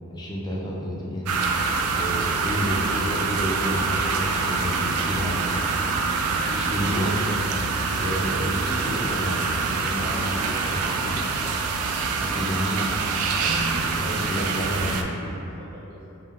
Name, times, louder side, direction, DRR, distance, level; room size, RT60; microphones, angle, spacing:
voice 1, 0.1-1.3 1.9-5.8 6.5-7.3 8.0-10.6 11.0-11.2 12.2-12.9 13.4-15.1, equal, 20° left, -4 dB, 0.4 m, -30 dB
sound 1, 1.3-15.0, right 4 dB, 80° right, 0.3 m, -25 dB
voice 2, 10.0-10.7 14.0-16.2, left 1 dB, 50° right, -11 dB, 1.3 m, -40 dB
3.5 x 3.3 x 2.9 m, 2.9 s
head